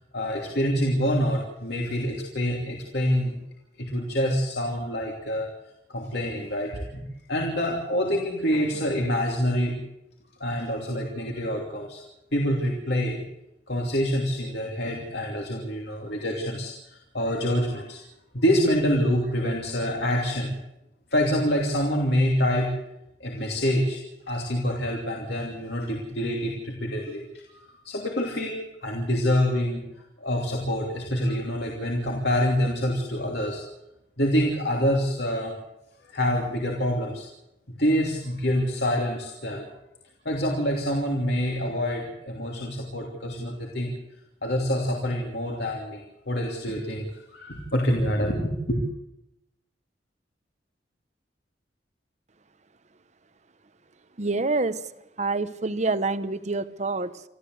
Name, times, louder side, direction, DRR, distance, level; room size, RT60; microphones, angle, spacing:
voice 1, 0.1-3.3 3.8-5.5 5.9-7.0 7.3-9.8 10.4-12.0 12.3-13.2 13.7-18.0 18.3-20.5 21.1-22.7 23.2-24.0 24.3-27.2 27.8-29.8 30.2-33.6 34.2-35.5 36.1-37.3 37.8-39.6 40.2-43.9 44.4-48.8, equal, 65° left, 0 dB, 3.0 m, -26 dB
voice 2, 54.2-54.8 55.2-57.2, right 3 dB, 40° right, 13 dB, 1.0 m, -27 dB
27.5 x 14.0 x 8.0 m, 0.88 s
head